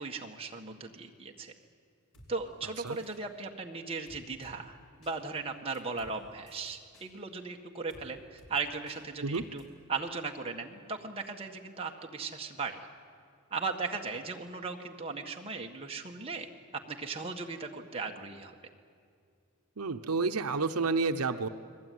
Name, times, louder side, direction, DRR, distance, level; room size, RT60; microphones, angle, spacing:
voice 1, 0.0-1.5 2.3-9.6 9.9-12.8 13.5-18.5, right 4 dB, 25° right, 1 dB, 1.7 m, -37 dB
sound 1, 2.1-2.3 2.9-3.2 4.1-4.6 5.0-5.2 5.7-6.1 6.5-7.1 7.9-8.0 8.4-8.5 8.9-9.0 9.3-9.6, equal, 90° left, 6.0 m, -56 dB
voice 2, 19.8-21.5, right 4 dB, 85° right, 8 dB, 0.9 m, -30 dB
29.5 x 21.0 x 9.4 m, 2.3 s
head